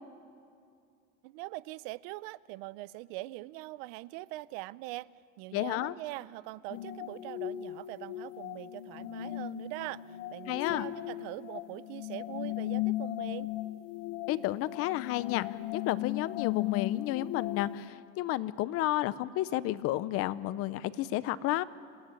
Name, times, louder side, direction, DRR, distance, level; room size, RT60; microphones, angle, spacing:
voice 1, 1.2-5.1 5.4-10.0 10.3-13.5, right 19 dB, 80° right, 19 dB, 0.6 m, -42 dB
voice 2, 5.5-5.9 10.5-10.8 14.3-15.5 15.7-21.6, left 15 dB, 50° left, 16 dB, 0.7 m, -31 dB
sound 1, 6.7-17.9, left 15 dB, 90° left, 1.1 m, -37 dB
26.0 x 16.0 x 9.8 m, 2.4 s
cardioid pair, 150°, 29 cm